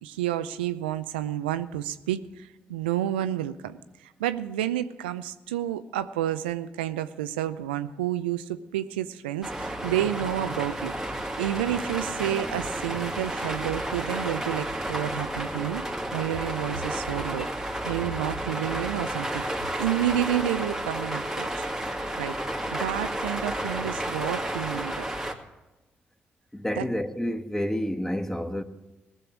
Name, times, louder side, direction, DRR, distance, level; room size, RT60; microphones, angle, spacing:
voice 1, 0.0-15.8 16.1-17.5 17.8-21.7 22.2-22.4 22.7-25.1 26.8-26.9, right 12 dB, 90° right, 0.5 m, -30 dB
sound 1, 9.4-25.3, right 1 dB, 5° right, 2.2 m, -32 dB
voice 2, 26.5-28.6, equal, 10° left, 1.2 m, -29 dB
19.0 x 6.9 x 6.0 m
hypercardioid pair, 40°, 5 cm